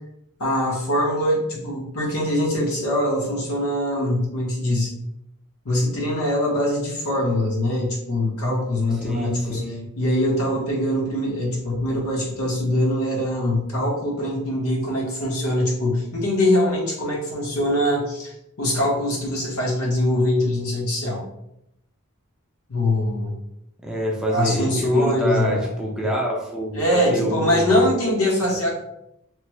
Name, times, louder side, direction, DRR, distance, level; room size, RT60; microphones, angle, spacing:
voice 1, 0.4-4.9 5.6-9.6 10.0-21.2 22.7-23.3 24.3-25.7 26.7-28.8, left 1 dB, 80° left, -2 dB, 1.0 m, -23 dB
voice 2, 9.0-9.8 23.8-27.8, right 1 dB, 5° right, -3 dB, 0.5 m, -27 dB
3.1 x 2.1 x 3.0 m, 0.80 s
head